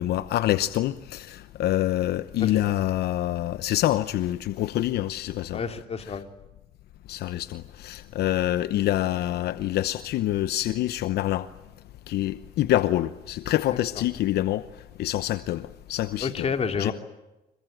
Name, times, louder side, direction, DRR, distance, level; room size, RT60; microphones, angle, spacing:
voice 1, 0.0-5.6 7.1-11.5 12.1-14.6 15.0-16.5 16.8-16.9, left 14 dB, 70° left, 0.9 m, -26 dB
voice 2, 2.4-2.7 5.5-6.3 16.2-16.9, left 5 dB, 35° left, 2.8 m, -29 dB
26.5 x 23.0 x 9.1 m
cardioid pair, 110°, 17 cm